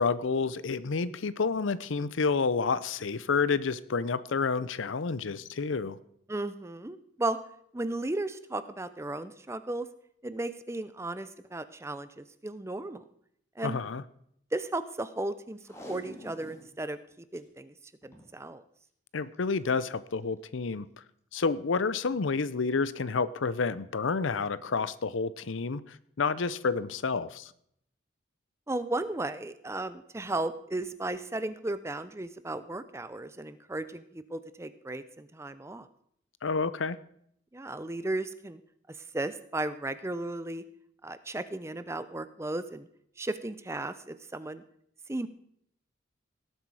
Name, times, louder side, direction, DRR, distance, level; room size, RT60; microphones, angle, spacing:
voice 1, 0.0-6.0 13.6-14.0 19.1-20.9 21.3-27.5 36.4-37.0, left 4 dB, 80° left, 16 dB, 0.6 m, -29 dB
voice 2, 6.3-7.4 7.7-9.9 10.2-13.0 13.6-13.8 14.5-15.6 15.9-17.0 17.3-17.7 18.0-18.6 28.7-35.9 37.5-38.6 38.9-40.6 41.0-42.9 43.2-44.6 45.1-45.3, right 2 dB, 15° right, 13 dB, 0.5 m, -35 dB
Packing tape duct tape, 15.6-16.7 17.1-17.2 17.4-17.5 18.0-18.3 19.3-19.6 20.2-20.3, equal, 15° left, 1.9 m, -46 dB
18.0 x 8.0 x 4.8 m, 0.70 s
head